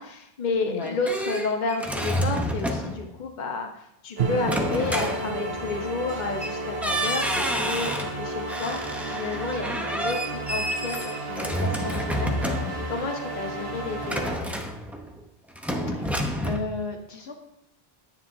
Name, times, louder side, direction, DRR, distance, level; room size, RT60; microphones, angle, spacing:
voice 1, 0.0-12.5 12.9-14.2, left 3 dB, 50° left, 3 dB, 1.1 m, -31 dB
sound 1, 0.6-3.1 4.4-5.8 6.4-6.5 6.8-8.2 8.5-13.0 14.0-15.2 15.6-16.6, equal, ahead, 0.8 m, -29 dB
sound 2, 4.2-14.4, right 2 dB, 70° right, 1.4 m, -33 dB
Drum, 4.2-8.2, right 6 dB, 85° right, 1.0 m, -35 dB
voice 2, 15.8-17.3, left 3 dB, 85° left, 3 dB, 1.5 m, -34 dB
10.0 x 9.2 x 2.7 m, 0.80 s
omnidirectional pair, 1.0 m